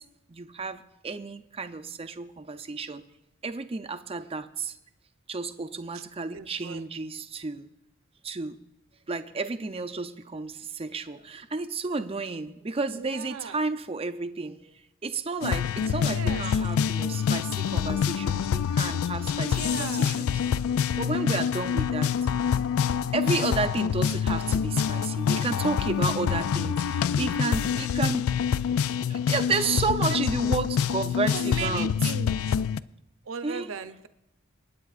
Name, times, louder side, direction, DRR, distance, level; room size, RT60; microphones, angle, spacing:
voice 1, 0.3-3.0 3.4-4.7 5.3-7.7 8.2-8.6 9.1-14.7 15.0-20.3 21.0-22.1 23.1-28.3 29.1-31.9 33.4-33.7, right 4 dB, 30° right, 10 dB, 0.5 m, -32 dB
voice 2, 6.3-6.9 12.9-13.6 15.9-16.6 19.4-20.2 27.8-28.2 30.0-30.2 31.3-32.4 33.3-34.1, right 5 dB, 70° right, 10 dB, 0.7 m, -38 dB
sound 1, 15.4-32.8, left 7 dB, 85° left, 0.3 m, -26 dB
27.5 x 9.4 x 2.5 m, 0.91 s
head